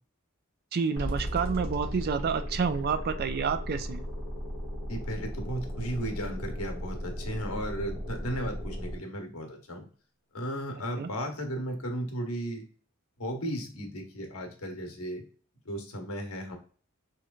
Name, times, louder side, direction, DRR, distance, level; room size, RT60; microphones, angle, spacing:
voice 1, 0.7-4.1 11.0-11.1, right 6 dB, 45° right, 10 dB, 0.4 m, -29 dB
sound 1, 1.0-9.0, equal, 75° right, 1.8 m, -36 dB
voice 2, 4.9-9.9 10.3-12.6 13.2-15.2 15.6-16.6, equal, 80° left, 3 dB, 1.0 m, -35 dB
4.3 x 3.1 x 2.3 m, 0.42 s
head